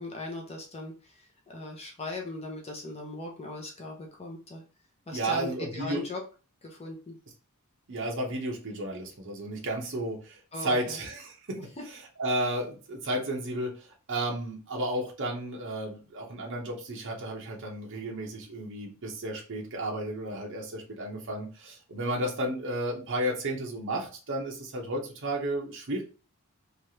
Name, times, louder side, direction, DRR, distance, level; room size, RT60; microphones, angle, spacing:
voice 1, 0.0-4.6 5.1-6.2 6.6-7.2 10.5-11.0 11.8-11.9, left 2 dB, 30° left, 0 dB, 0.6 m, -39 dB
voice 2, 5.1-6.0 7.9-11.6 11.9-26.0, right 1 dB, 60° right, -1 dB, 0.7 m, -33 dB
3.2 x 2.4 x 2.7 m, 0.35 s
head